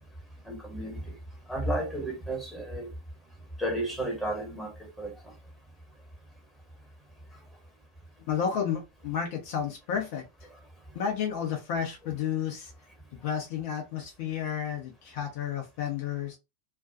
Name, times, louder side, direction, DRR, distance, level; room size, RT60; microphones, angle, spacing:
voice 1, 0.4-1.1 1.5-2.9 3.6-5.1, right 1 dB, ahead, 1.3 m, -32 dB
voice 2, 8.3-10.2 10.9-12.7 13.1-16.4, left 8 dB, 50° left, 0.6 m, -31 dB
2.4 x 2.3 x 2.5 m
figure-of-eight pair, 90°, 0 cm